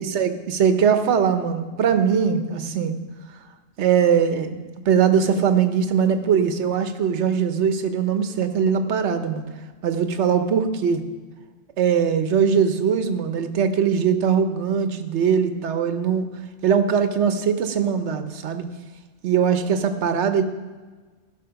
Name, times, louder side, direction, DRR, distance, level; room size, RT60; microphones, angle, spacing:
voice 1, 0.1-2.9 3.8-4.6 4.9-9.4 9.8-11.0 11.8-16.3 16.6-18.7 19.2-20.4, right 7 dB, 70° right, 9 dB, 1.1 m, -21 dB
15.5 x 5.9 x 5.8 m, 1.4 s
omnidirectional pair, 1.2 m